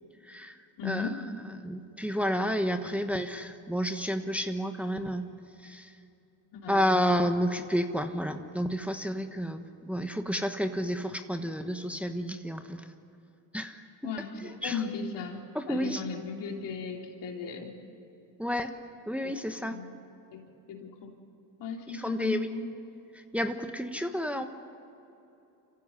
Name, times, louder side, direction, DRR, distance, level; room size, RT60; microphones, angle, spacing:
voice 1, 0.2-0.6 0.8-1.1 1.6-5.3 5.6-5.9 6.7-12.9 13.5-14.1 14.4-14.8 15.5-16.0 18.4-18.7 19.1-19.7 21.9-22.5 23.1-24.5, equal, 5° right, 6 dB, 1.3 m, -31 dB
voice 2, 0.8-1.2 2.8-3.1 6.5-6.9 14.0-17.8 19.6-19.9 20.3-21.1 21.6-22.6, left 5 dB, 75° left, 1 dB, 3.4 m, -37 dB
25.5 x 15.5 x 10.0 m, 2.9 s
supercardioid pair, 75°, 42 cm